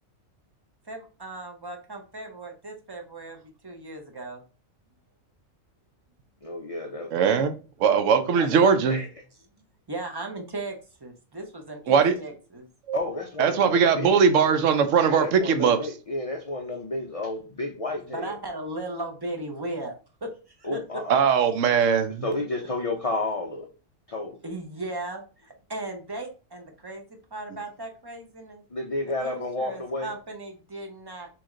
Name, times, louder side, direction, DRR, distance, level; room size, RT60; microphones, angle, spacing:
voice 1, 0.9-4.4 8.4-8.7 9.9-12.6 18.1-19.9 20.2-20.3 20.6-20.8 24.4-27.0 27.3-28.6 29.2-31.3, right 2 dB, 25° right, 3 dB, 0.6 m, -37 dB
voice 2, 6.4-7.1 8.3-9.1 12.9-14.1 15.0-18.3 20.6-21.2 22.2-23.7 24.1-24.4 28.7-30.1, left 2 dB, 55° left, 2 dB, 0.4 m, -31 dB
voice 3, 7.1-7.5 7.8-9.0 11.9-12.2 12.9-13.0 13.4-15.8 21.1-22.2, right 6 dB, 70° right, 8 dB, 1.0 m, -20 dB
4.3 x 3.1 x 3.7 m, 0.36 s
omnidirectional pair, 1.4 m